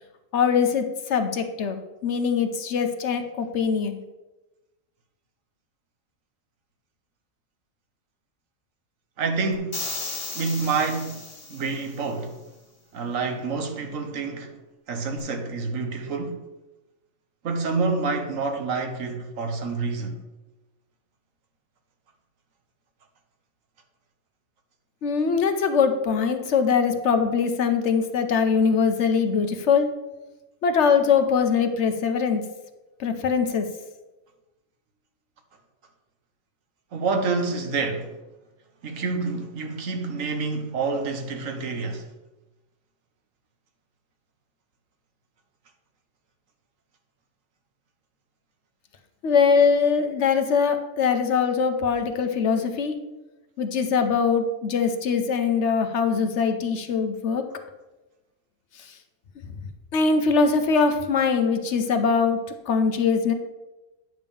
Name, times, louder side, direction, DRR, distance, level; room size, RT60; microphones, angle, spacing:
voice 1, 0.3-4.0 25.0-29.9 30.6-32.4 33.0-33.7 49.2-53.0 53.6-57.4 58.8-58.9 59.4-59.5 59.9-62.4 62.7-63.3, left 5 dB, 65° left, 1.0 m, -22 dB
voice 2, 9.2-9.9 10.3-12.4 12.9-14.5 14.9-16.4 17.4-20.2 36.9-38.2 38.8-42.0, right 4 dB, 75° right, 1.4 m, -28 dB
sound 1, 9.7-12.0, left 3 dB, 40° left, 2.2 m, -35 dB
9.3 x 3.6 x 6.9 m
omnidirectional pair, 1.4 m